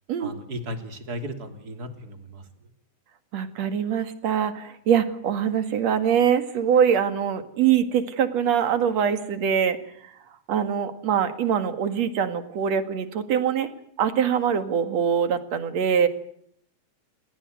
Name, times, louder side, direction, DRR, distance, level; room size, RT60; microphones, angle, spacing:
voice 1, 0.2-2.4, equal, 30° right, 7 dB, 3.3 m, -35 dB
voice 2, 3.3-9.8 10.0-10.1 10.5-13.7 14.0-16.1, right 8 dB, 65° right, 10 dB, 3.1 m, -23 dB
29.0 x 19.0 x 9.3 m, 0.68 s
omnidirectional pair, 3.4 m